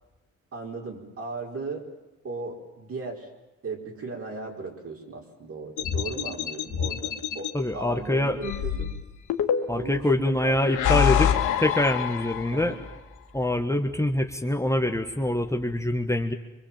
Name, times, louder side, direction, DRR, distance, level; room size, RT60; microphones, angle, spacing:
voice 1, 0.5-1.9 2.2-3.3 3.6-8.9 9.8-10.8 12.5-12.8, right 3 dB, 50° right, 1 dB, 4.7 m, -37 dB
sound 1, 5.8-7.5 8.4-10.0 10.6-12.7, left 9 dB, 80° left, 1.9 m, -26 dB
voice 2, 7.5-8.4 9.7-12.7 13.3-16.3, left 1 dB, 10° left, 4 dB, 1.4 m, -25 dB
25.0 x 22.5 x 7.4 m, 1.0 s
cardioid pair, 90°, 30 cm